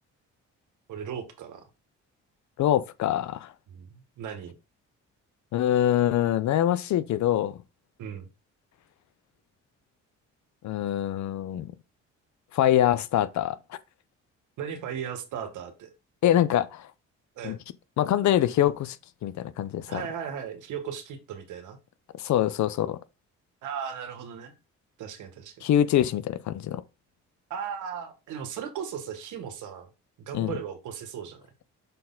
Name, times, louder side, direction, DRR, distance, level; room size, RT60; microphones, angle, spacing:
voice 1, 0.9-1.7 3.7-4.5 8.0-8.3 14.6-15.9 17.4-17.6 19.9-21.8 23.6-24.5 25.0-25.6 27.5-29.9 30.2-31.4, right 8 dB, 80° right, 1.6 m, -37 dB
voice 2, 2.6-3.5 5.5-7.6 10.6-11.7 12.5-13.6 16.2-16.9 17.4-17.6 18.0-19.0 19.2-20.0 22.2-23.0 25.6-26.8 30.3-30.5, left 11 dB, 70° left, 0.7 m, -24 dB
6.5 x 4.3 x 3.9 m
cardioid pair, 90°, 30 cm